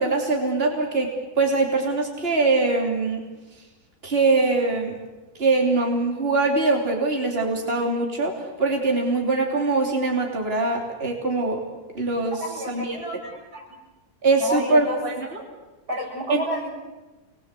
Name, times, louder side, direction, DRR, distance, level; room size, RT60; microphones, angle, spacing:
voice 1, 0.0-3.2 4.0-4.9 5.4-11.6 11.9-12.4 12.7-13.0 14.2-15.4 16.3-16.4, right 3 dB, 40° right, 0 dB, 3.4 m, -22 dB
voice 2, 12.4-13.7 14.4-15.0 15.9-16.7, left 1 dB, 90° right, -2 dB, 8.5 m, -31 dB
28.0 x 21.0 x 8.3 m, 1.1 s
omnidirectional pair, 1.6 m